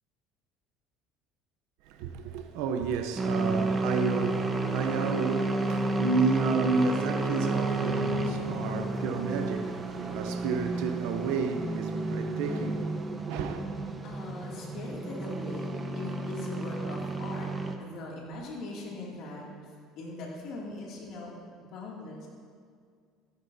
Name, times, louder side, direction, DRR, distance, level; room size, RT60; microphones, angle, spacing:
voice 1, 1.8-13.6, right 4 dB, 80° right, 0.7 m, -31 dB
sound 1, 3.2-17.8, right 2 dB, 20° right, 1.0 m, -31 dB
voice 2, 14.0-17.5 17.8-19.6 20.0-21.3 21.6-22.3, left 2 dB, 60° left, 2.4 m, -41 dB
13.5 x 12.0 x 2.7 m
cardioid pair, 125°, 0 cm